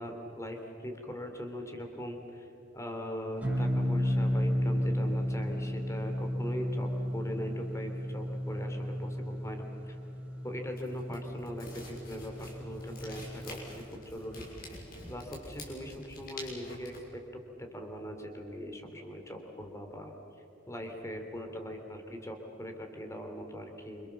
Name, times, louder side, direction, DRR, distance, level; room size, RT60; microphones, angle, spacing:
voice 1, 0.0-2.5 2.7-10.0 10.4-14.8 15.1-17.2 17.6-20.1 20.7-24.1, equal, 15° left, 4 dB, 3.2 m, -41 dB
sound 1, 3.4-13.9, equal, 10° right, 5.1 m, -33 dB
sound 2, 10.7-17.0, left 1 dB, 50° left, 6.4 m, -47 dB
28.0 x 26.5 x 7.3 m, 3.0 s
head